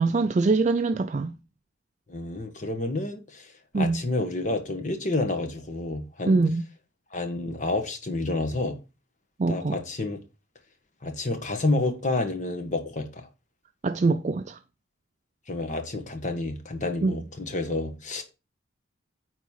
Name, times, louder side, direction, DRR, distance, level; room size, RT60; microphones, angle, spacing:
voice 1, 0.0-1.3 3.7-4.0 6.2-6.6 9.4-9.8 13.8-14.6 17.0-17.2, right 3 dB, 35° right, 0.4 m, -23 dB
voice 2, 2.1-3.4 3.7-6.4 7.1-8.8 9.5-10.2 11.0-13.3 15.5-18.2, left 2 dB, 40° left, 1.4 m, -29 dB
9.4 x 4.1 x 5.5 m
head